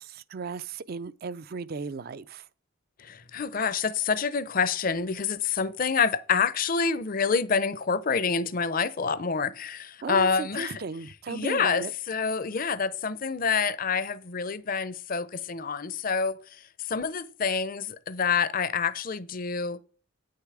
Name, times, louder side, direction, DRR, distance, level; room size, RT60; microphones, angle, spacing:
voice 1, 0.0-2.5 10.0-11.9, right 4 dB, 45° right, 0.4 m, -36 dB
voice 2, 3.0-10.8 11.3-19.8, left 5 dB, 40° left, 0.5 m, -27 dB
9.1 x 6.6 x 4.8 m
head